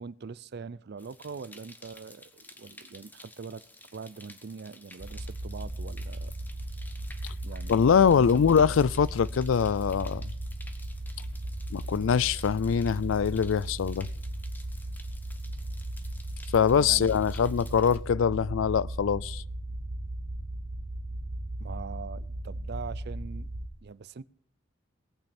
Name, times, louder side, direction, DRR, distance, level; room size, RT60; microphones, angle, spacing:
voice 1, 0.0-3.6 3.9-6.3 7.4-8.3 16.8-17.2 21.6-23.5 23.8-24.2, right 5 dB, 55° right, 0.5 m, -42 dB
sound 1, 1.0-18.0, left 2 dB, 10° left, 1.1 m, -53 dB
sound 2, 5.0-23.7, right 1 dB, 90° right, 1.0 m, -37 dB
voice 2, 7.7-10.2 11.7-14.1 16.5-19.4, left 7 dB, 75° left, 0.4 m, -23 dB
17.5 x 8.9 x 4.3 m
head